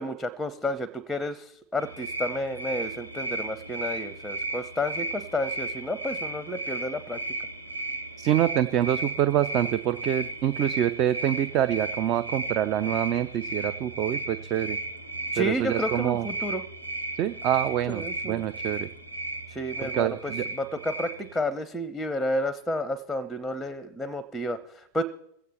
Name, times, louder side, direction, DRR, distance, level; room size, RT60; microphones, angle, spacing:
voice 1, 0.0-7.2 15.3-16.6 17.9-18.4 19.5-25.0, left 1 dB, 5° left, 19 dB, 0.6 m, -31 dB
sound 1, 1.8-21.4, right 2 dB, 90° right, 0.8 m, -35 dB
voice 2, 8.2-14.8 15.4-16.3 17.2-18.9 19.8-20.4, right 11 dB, 35° right, 12 dB, 0.4 m, -26 dB
21.5 x 8.3 x 4.3 m, 0.75 s
figure-of-eight pair, 90°, 0 cm